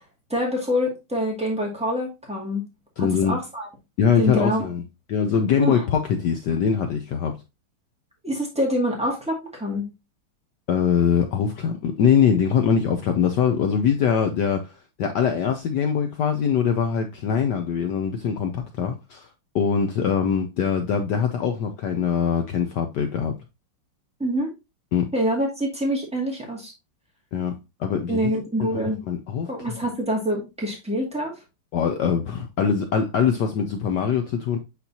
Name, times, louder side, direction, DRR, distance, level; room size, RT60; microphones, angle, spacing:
voice 1, 0.3-2.7 3.0-3.7 4.2-4.7 5.6-5.8 8.2-9.9 24.2-24.5 25.1-26.7 28.1-29.0 29.5-31.4, equal, 5° right, 2.0 m, -25 dB
voice 2, 3.0-3.4 4.0-4.8 5.1-7.4 10.7-14.7 15.0-19.3 19.5-23.3 24.9-25.1 27.3-27.5 27.8-28.3 28.6-28.8 29.1-29.5 31.7-34.6, left 7 dB, 70° left, 1.1 m, -22 dB
8.3 x 4.2 x 2.8 m
omnidirectional pair, 2.4 m